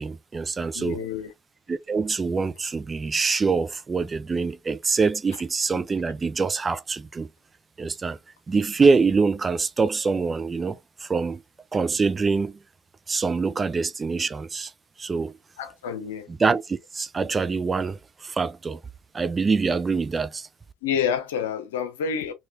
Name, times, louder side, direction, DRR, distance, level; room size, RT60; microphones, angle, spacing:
voice 1, 0.0-1.0 1.7-7.3 7.8-8.2 8.5-11.4 11.7-12.6 13.1-14.7 15.0-15.3 16.4-18.8 19.1-20.5, right 4 dB, 25° right, 0.5 m, -25 dB
voice 2, 0.7-1.3 15.6-16.3 20.8-22.3, left 7 dB, 75° left, 0.8 m, -28 dB
4.6 x 3.1 x 2.5 m
hypercardioid pair, 65°, 0 cm